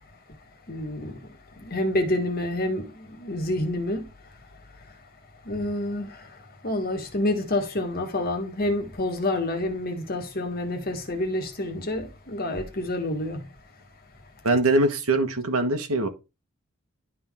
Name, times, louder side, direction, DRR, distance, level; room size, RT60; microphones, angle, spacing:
voice 1, 0.7-4.1 5.4-13.5, left 1 dB, 45° left, 1.5 m, -28 dB
voice 2, 14.4-16.1, right 2 dB, 85° right, 1.5 m, -22 dB
11.5 x 3.8 x 3.6 m
head